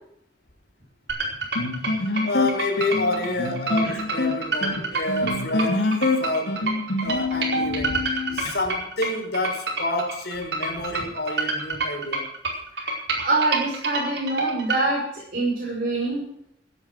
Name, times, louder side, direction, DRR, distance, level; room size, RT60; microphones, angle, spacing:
sound 1, 1.1-14.8, right 3 dB, 80° right, 4.6 m, -28 dB
sound 2, 1.6-8.5, left 2 dB, 85° left, 3.3 m, -26 dB
voice 1, 2.2-6.6 7.0-12.3, left 2 dB, 65° left, 3 dB, 4.5 m, -28 dB
voice 2, 13.1-16.3, right 2 dB, 55° right, -4 dB, 5.4 m, -25 dB
16.0 x 9.9 x 6.3 m, 0.72 s
head